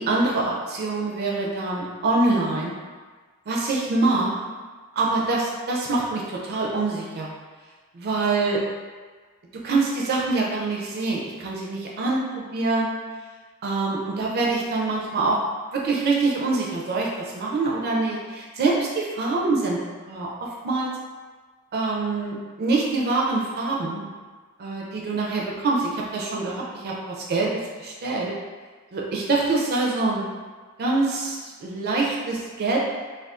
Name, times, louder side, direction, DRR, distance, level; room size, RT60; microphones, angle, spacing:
voice 1, 0.0-2.7 3.5-4.5 4.9-7.3 7.9-8.6 9.6-12.9 13.6-15.4 15.7-19.8 20.1-20.9 21.7-24.0 24.6-28.4 28.9-30.2 30.8-32.8, right 3 dB, 45° right, -2 dB, 0.4 m, -25 dB
2.4 x 2.3 x 3.5 m, 1.4 s
head